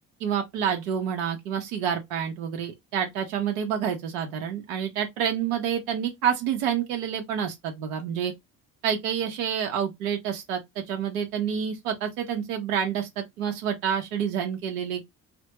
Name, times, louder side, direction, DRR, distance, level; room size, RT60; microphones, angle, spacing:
voice 1, 0.2-8.3 8.8-10.6 10.9-15.0, right 8 dB, 85° right, 0.7 m, -28 dB
2.2 x 2.2 x 2.8 m
hypercardioid pair, 60°, 41 cm